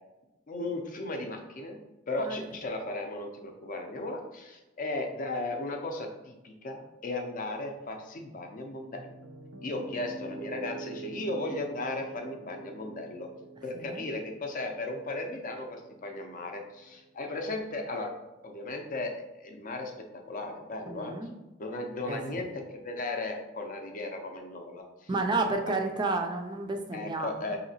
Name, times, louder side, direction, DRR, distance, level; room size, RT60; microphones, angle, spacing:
voice 1, 0.5-1.8 2.1-9.1 9.6-13.3 13.6-18.1 18.4-19.9 20.3-21.1 21.6-25.1 26.9-27.6, left 2 dB, 45° left, 4 dB, 0.5 m, -36 dB
Piano, 9.0-17.1, right 3 dB, 85° right, 0.5 m, -46 dB
voice 2, 13.7-14.1 20.9-21.3 22.1-22.4 25.1-27.3, right 3 dB, 25° right, 4 dB, 0.4 m, -31 dB
5.0 x 2.8 x 2.7 m, 1.0 s
head